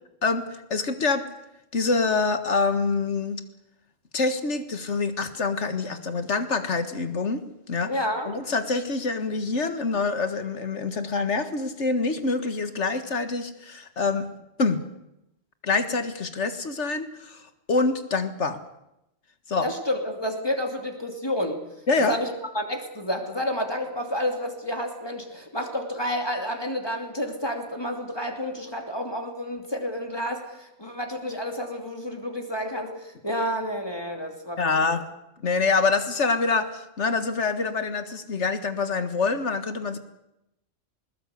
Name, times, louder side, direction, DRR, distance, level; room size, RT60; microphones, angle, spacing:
voice 1, 0.2-1.3 1.7-3.4 4.1-7.9 8.3-14.3 14.6-14.8 15.6-17.4 17.7-18.6 19.5-19.7 21.9-22.2 34.6-35.1 35.4-40.0, left 4 dB, 85° left, 10 dB, 2.0 m, -26 dB
voice 2, 7.9-8.3 19.6-21.6 22.0-34.6, equal, 20° left, 3 dB, 2.8 m, -30 dB
20.5 x 20.0 x 8.3 m, 0.86 s
omnidirectional pair, 1.2 m